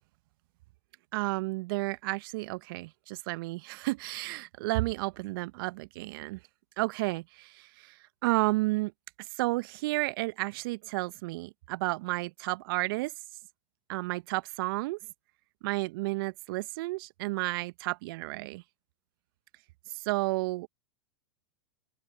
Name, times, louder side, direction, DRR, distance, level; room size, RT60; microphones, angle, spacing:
voice 1, 1.1-6.4 6.8-8.0 8.2-8.9 9.4-13.1 13.9-15.0 15.6-18.6 19.9-20.7, right 22 dB, 50° right, 1.3 m, -32 dB
open air
figure-of-eight pair, 100°, 15 cm